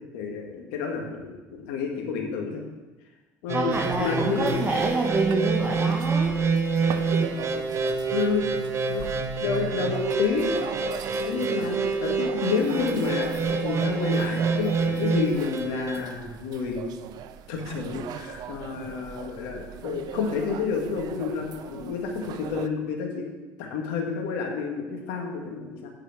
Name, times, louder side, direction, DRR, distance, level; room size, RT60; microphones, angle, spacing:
voice 1, 0.1-2.6 3.4-3.7 4.0-4.6 8.1-8.5 8.9-10.6 11.2-13.3 13.6-16.9 17.5-23.3 23.6-25.9, left 5 dB, 80° left, 1 dB, 1.9 m, -29 dB
voice 2, 3.5-6.4 10.9-11.2, right 3 dB, 20° right, -2 dB, 1.6 m, -27 dB
sound 1, 3.5-16.0, right 4 dB, 40° right, 1.4 m, -27 dB
sound 2, 3.7-22.7, right 9 dB, 60° right, 0.6 m, -40 dB
9.1 x 4.9 x 7.7 m, 1.2 s
supercardioid pair, 75°, 7 cm